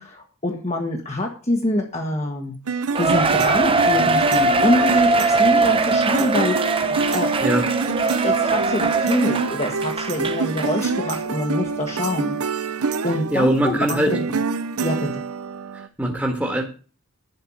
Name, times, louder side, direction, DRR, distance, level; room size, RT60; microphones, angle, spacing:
voice 1, 0.0-7.3 8.2-14.2 14.8-15.2, left 1 dB, 30° left, 1 dB, 1.6 m, -25 dB
sound 1, 2.7-15.9, right 5 dB, 85° right, 0.8 m, -27 dB
Cheering, 2.9-10.7 11.1-11.2 11.9-12.0, right 3 dB, 25° right, 1.0 m, -21 dB
sound 2, 5.4-15.1, right 4 dB, 80° left, 1.8 m, -38 dB
voice 2, 13.3-14.1 15.7-16.6, right 1 dB, 5° right, 0 dB, 1.8 m, -21 dB
11.0 x 5.7 x 8.7 m, 0.37 s
head